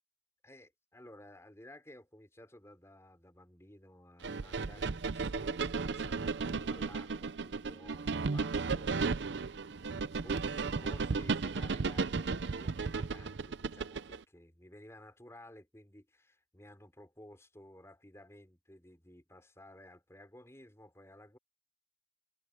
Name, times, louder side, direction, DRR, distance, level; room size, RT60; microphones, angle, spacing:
voice 1, 0.4-9.1 9.8-21.4, left 1 dB, 15° left, 4.5 m, -55 dB
sound 1, 4.2-14.2, right 4 dB, 75° right, 0.6 m, -34 dB
head